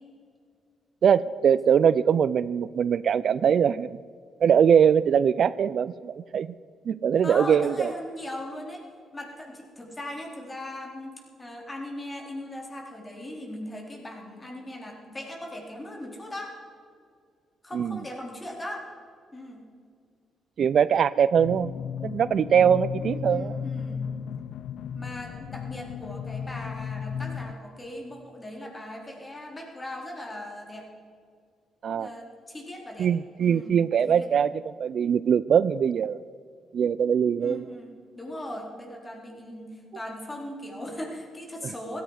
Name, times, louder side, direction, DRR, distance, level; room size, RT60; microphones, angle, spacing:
voice 1, 1.0-4.0 4.4-6.5 6.9-7.9 17.7-18.0 20.6-21.7 22.0-23.6 31.8-32.1 33.0-36.2 36.7-37.6 41.6-41.7, right 8 dB, 55° right, 17 dB, 0.4 m, -22 dB
voice 2, 7.2-8.9 9.1-11.1 11.4-16.5 17.6-18.8 19.3-19.6 23.0-24.1 24.9-30.9 31.9-33.1 33.4-33.8 34.1-34.3 37.4-42.0, left 1 dB, 20° left, 1 dB, 3.8 m, -39 dB
sound 1, 21.4-27.5, left 7 dB, 75° left, 0.5 m, -34 dB
16.0 x 14.0 x 4.8 m, 2.2 s
cardioid pair, 90°, 0 cm